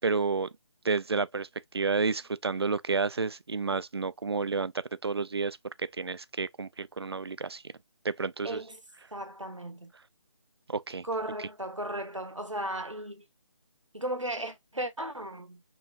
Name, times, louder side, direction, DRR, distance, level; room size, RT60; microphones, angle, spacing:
voice 1, 0.0-0.5 0.8-1.5 1.7-4.7 5.0-7.6 8.0-8.6 10.7-11.1, right 4 dB, 55° right, 0.5 m, -30 dB
voice 2, 8.4-8.8 9.1-9.9 11.0-13.2 13.9-15.6, right 1 dB, 85° right, 1.4 m, -35 dB
6.3 x 3.1 x 2.4 m
figure-of-eight pair, 155°, 16 cm